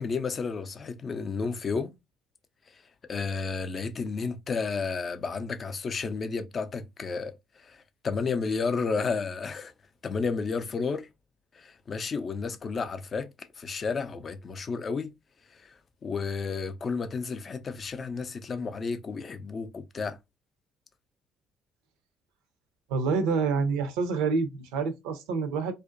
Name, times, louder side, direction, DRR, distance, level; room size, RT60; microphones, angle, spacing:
voice 1, 0.0-1.9 2.7-2.8 3.1-9.7 10.0-11.1 11.5-15.1 15.5-15.8 16.0-20.2, left 4 dB, 40° left, 0.4 m, -32 dB
voice 2, 22.9-25.7, right 4 dB, 75° right, 0.4 m, -27 dB
2.5 x 2.1 x 2.4 m
hypercardioid pair, 55°, 0 cm